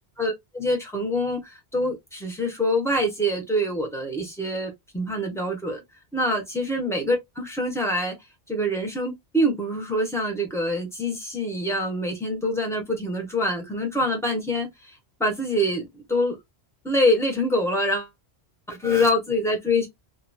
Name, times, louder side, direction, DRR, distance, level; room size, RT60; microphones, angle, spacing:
voice 1, 0.2-5.8 6.1-8.1 8.5-14.7 15.2-16.4 16.8-18.1 18.7-19.9, left 1 dB, 5° left, 0.9 m, -25 dB
2.8 x 2.5 x 2.2 m
omnidirectional pair, 1.1 m